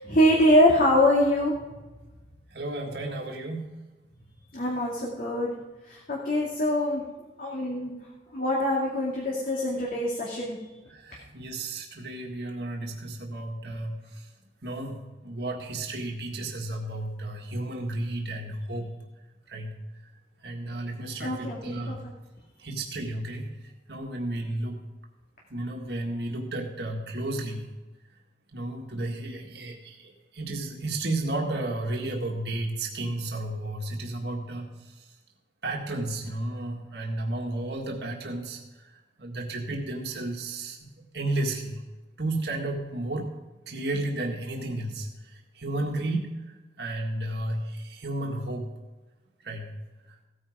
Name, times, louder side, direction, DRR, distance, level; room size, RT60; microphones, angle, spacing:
voice 1, 0.0-1.5 4.5-5.5 5.9-7.0 7.4-7.9 8.3-10.6 21.2-22.0, left 1 dB, 50° left, -3 dB, 2.4 m, -24 dB
voice 2, 2.5-3.7 10.9-14.3 14.6-18.9 19.5-19.7 20.4-22.0 22.6-23.5 23.9-24.8 25.5-27.7 28.5-34.7 35.6-38.6 38.9-41.8 42.2-43.3 43.7-46.3 46.8-48.7 49.4-49.7, right 2 dB, 65° right, 1 dB, 1.8 m, -33 dB
16.0 x 9.3 x 5.0 m, 1.2 s
head